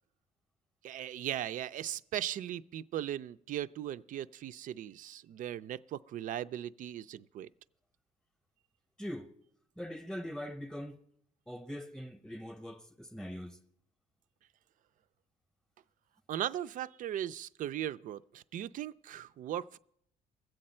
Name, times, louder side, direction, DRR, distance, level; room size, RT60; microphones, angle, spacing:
voice 1, 0.8-7.5 16.3-19.8, right 11 dB, 50° right, 0.4 m, -38 dB
voice 2, 9.0-9.3 9.8-11.0 11.5-13.6, equal, 5° left, 0.8 m, -42 dB
21.5 x 7.7 x 4.3 m
cardioid pair, 110°, 17 cm